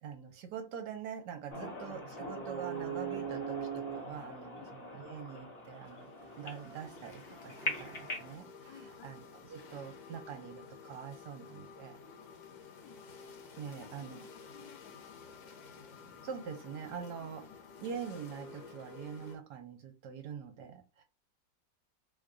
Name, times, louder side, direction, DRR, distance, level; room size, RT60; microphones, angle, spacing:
voice 1, 0.0-6.1 6.4-12.0 13.6-14.3 16.2-17.4 17.8-21.0, right 7 dB, 70° right, 5 dB, 1.3 m, -44 dB
sound 1, 1.5-8.4, right 2 dB, 45° left, 1.0 m, -41 dB
sound 2, 5.6-19.3, left 5 dB, 70° left, 1.3 m, -52 dB
voice 2, 8.7-9.2 12.0-13.0 13.7-15.5 17.0-17.5, left 8 dB, 85° left, 7 dB, 1.3 m, -57 dB
3.2 x 2.3 x 3.7 m, 0.28 s
omnidirectional pair, 2.0 m